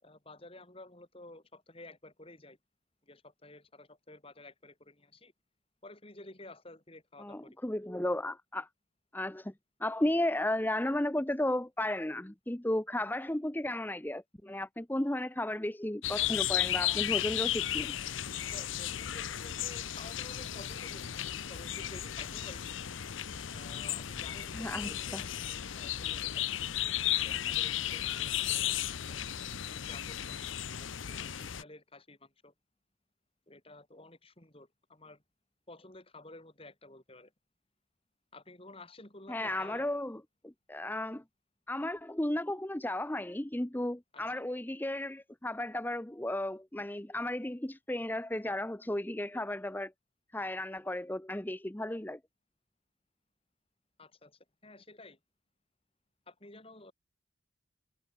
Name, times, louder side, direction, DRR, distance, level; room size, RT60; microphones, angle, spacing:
voice 1, 0.0-2.6 3.1-5.3 5.8-7.4 18.3-21.1 21.5-22.7 23.5-26.5 27.2-29.2 29.6-30.4 30.8-32.5 33.5-35.2 35.7-37.3 38.3-39.8 44.1-44.2 54.0-55.2 56.3-56.9, left 2 dB, 30° left, 3.4 m, -52 dB
voice 2, 7.2-8.7 9.1-9.5 9.8-18.0 24.5-25.2 39.3-41.2 41.7-49.9 50.3-52.2, left 1 dB, 10° left, 0.7 m, -34 dB
sound 1, 16.0-31.6, left 12 dB, 75° left, 0.7 m, -34 dB
head